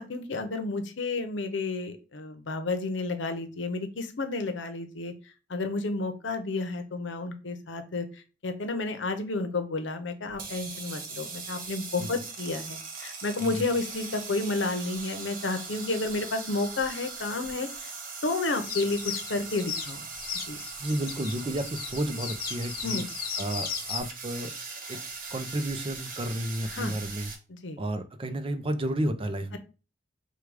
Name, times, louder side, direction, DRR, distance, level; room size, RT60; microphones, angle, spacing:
voice 1, 0.0-5.1 5.5-8.1 8.4-17.9 18.2-20.1 20.5-20.6 22.8-23.1 26.7-26.9 27.5-27.8, left 3 dB, 85° left, 7 dB, 0.8 m, -31 dB
sound 1, 10.3-27.4, right 4 dB, 50° right, 1.0 m, -40 dB
sound 2, 18.6-24.0, left 7 dB, 55° left, 0.9 m, -36 dB
voice 2, 20.8-23.0 23.4-24.5 24.9-25.0 25.3-27.3 27.8-29.6, right 1 dB, 30° right, 9 dB, 0.5 m, -31 dB
4.8 x 2.3 x 4.7 m, 0.33 s
head